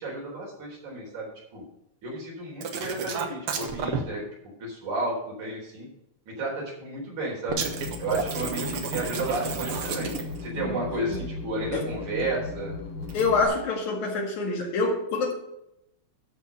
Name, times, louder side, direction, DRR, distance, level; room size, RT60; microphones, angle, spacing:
voice 1, 0.0-1.6 2.0-4.2 4.6-5.9 6.3-7.7 8.0-10.1 10.4-12.7, right 2 dB, 75° right, 5.4 m, -32 dB
sound 1, 2.6-4.0 7.5-10.5 13.0-13.2, right 6 dB, 55° right, 1.8 m, -31 dB
sound 2, 7.5-13.4, left 4 dB, 60° left, 1.9 m, -37 dB
voice 2, 13.1-15.3, left 3 dB, 75° left, 3.4 m, -26 dB
13.0 x 4.6 x 6.6 m
omnidirectional pair, 3.4 m